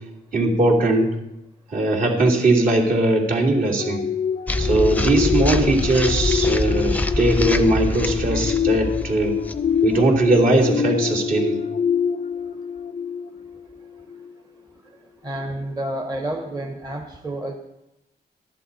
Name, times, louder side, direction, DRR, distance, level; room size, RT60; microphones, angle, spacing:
voice 1, 0.3-1.1 1.7-4.0 4.6-9.3 9.8-11.6, right 2 dB, 50° right, -3 dB, 3.2 m, -19 dB
sound 1, 3.8-13.6 14.1-14.3, left 7 dB, 40° left, 0.4 m, -25 dB
sound 2, 4.5-10.6, left 2 dB, 10° left, 0.7 m, -25 dB
voice 2, 15.2-17.5, right 1 dB, 20° right, 1 dB, 1.3 m, -29 dB
14.5 x 11.5 x 4.3 m, 0.88 s
wide cardioid pair, 130°, 18 cm